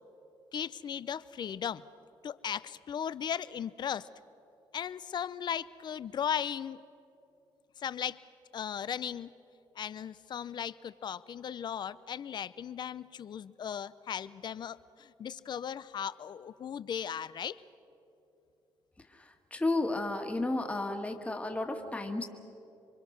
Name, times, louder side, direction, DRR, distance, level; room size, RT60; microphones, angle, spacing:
voice 1, 0.5-1.8 2.2-4.1 4.7-6.8 7.8-8.2 8.5-9.3 9.8-17.6, left 8 dB, 50° left, 16 dB, 0.6 m, -37 dB
voice 2, 19.5-22.3, left 2 dB, 15° left, 4 dB, 1.8 m, -32 dB
27.0 x 24.0 x 6.5 m, 2.8 s
cardioid pair, 105°, 9 cm